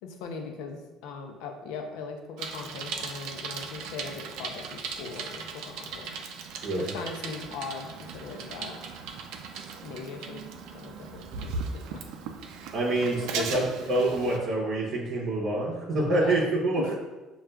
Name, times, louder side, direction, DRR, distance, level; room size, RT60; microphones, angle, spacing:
voice 1, 0.0-6.2 6.7-8.8 9.8-10.5 10.7-12.0 13.4-13.5 15.9-16.4 16.8-17.0, left 5 dB, 85° left, 4 dB, 0.5 m, -39 dB
Bicycle, 2.4-14.4, right 5 dB, 75° right, 0.4 m, -38 dB
voice 2, 12.7-16.9, right 2 dB, 50° right, -5 dB, 0.7 m, -26 dB
6.3 x 2.3 x 2.2 m, 1.1 s
cardioid pair, 150°, 0 cm